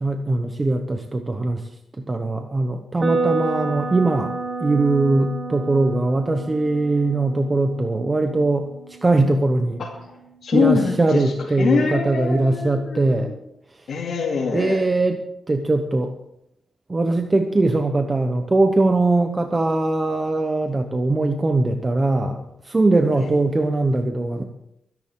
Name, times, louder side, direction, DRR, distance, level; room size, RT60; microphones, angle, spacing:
voice 1, 0.0-1.7 2.0-4.3 4.6-9.8 10.5-13.3 13.7-13.9 14.5-16.1 16.9-24.4, right 2 dB, 20° right, 5 dB, 0.9 m, -21 dB
sound 1, 3.0-10.9, right 4 dB, 35° right, 1.8 m, -31 dB
voice 2, 9.8-13.3 13.9-14.8 23.1-23.3, left 5 dB, 70° left, -4 dB, 2.6 m, -24 dB
24.0 x 11.0 x 3.8 m, 0.80 s
wide cardioid pair, 165°, 0 cm